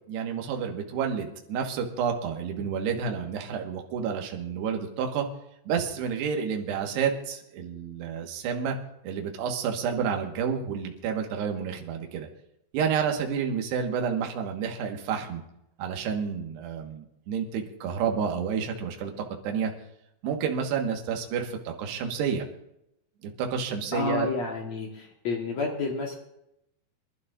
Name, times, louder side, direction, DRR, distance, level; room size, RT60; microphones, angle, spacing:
voice 1, 0.1-5.3 5.7-8.8 9.0-12.3 12.7-15.4 15.8-19.1 19.4-19.7 20.2-22.4 23.4-24.3, right 7 dB, 70° right, 2 dB, 3.3 m, -30 dB
voice 2, 23.9-26.1, left 4 dB, 85° left, 0 dB, 1.5 m, -30 dB
26.0 x 11.5 x 2.6 m, 0.81 s
omnidirectional pair, 5.5 m